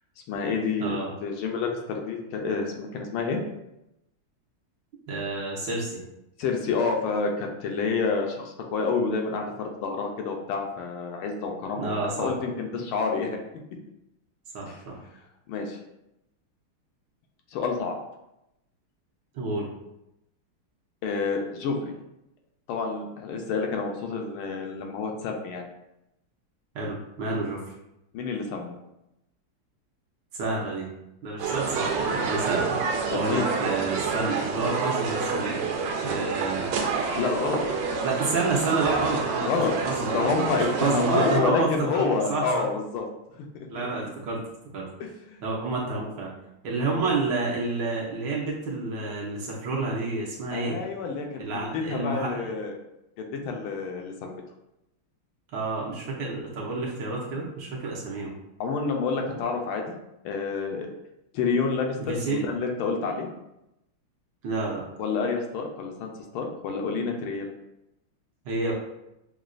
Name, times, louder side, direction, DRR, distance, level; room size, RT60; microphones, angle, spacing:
voice 1, 0.3-3.4 6.4-13.4 14.6-14.8 15.5-15.8 17.5-18.0 21.0-21.9 22.7-25.7 28.1-28.7 33.1-33.5 37.2-37.6 39.4-39.7 40.1-43.0 43.3-43.5 44.0-44.1 45.0-45.4 50.5-51.4 51.7-52.7 53.2-54.3 58.6-59.8 60.2-60.9 61.3-62.0 62.3-63.3 65.0-67.5, left 4 dB, 80° left, 2 dB, 1.4 m, -28 dB
voice 2, 0.8-1.1 5.1-6.0 11.7-12.3 14.5-15.0 19.3-19.7 26.7-27.6 30.3-30.9 31.2-32.8 33.1-35.6 36.0-36.7 38.0-39.5 39.8-40.2 40.6-42.7 43.7-44.4 44.7-44.9 45.4-46.3 46.6-50.8 51.4-52.5 55.5-58.3 62.0-62.5 64.4-64.8 68.4-68.7, right 3 dB, 65° right, -3 dB, 1.3 m, -29 dB
sound 1, 31.4-41.4, right 4 dB, 85° right, 1.5 m, -28 dB
6.2 x 2.2 x 2.5 m, 0.87 s
omnidirectional pair, 2.4 m